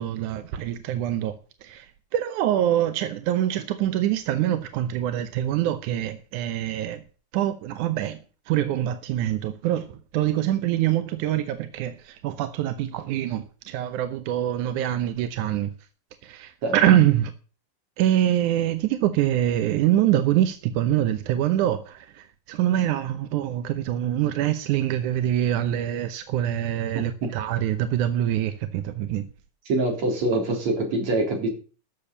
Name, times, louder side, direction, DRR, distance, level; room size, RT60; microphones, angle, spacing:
voice 1, 0.0-1.3 1.6-1.9 2.1-7.0 7.3-8.2 8.5-15.7 16.2-17.3 18.0-29.3, right 12 dB, 75° right, 1.9 m, -24 dB
voice 2, 29.7-31.5, right 2 dB, 45° right, 4.7 m, -24 dB
12.0 x 7.0 x 7.0 m
omnidirectional pair, 4.3 m